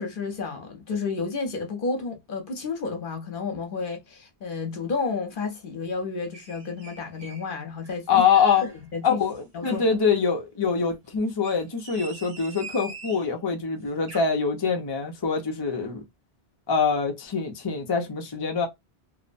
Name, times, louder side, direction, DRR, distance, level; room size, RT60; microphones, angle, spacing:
voice 1, 0.0-8.2 8.6-9.2 9.5-9.8, left 4 dB, 60° left, 0.9 m, -31 dB
sound 1, 6.3-7.5 7.8-8.8 9.2-9.9 11.3-13.3 13.8-14.2, right 3 dB, 75° right, 1.3 m, -43 dB
voice 2, 8.1-8.6 9.0-16.0 16.7-18.7, left 6 dB, 30° left, 0.5 m, -24 dB
2.7 x 2.1 x 2.4 m
omnidirectional pair, 1.0 m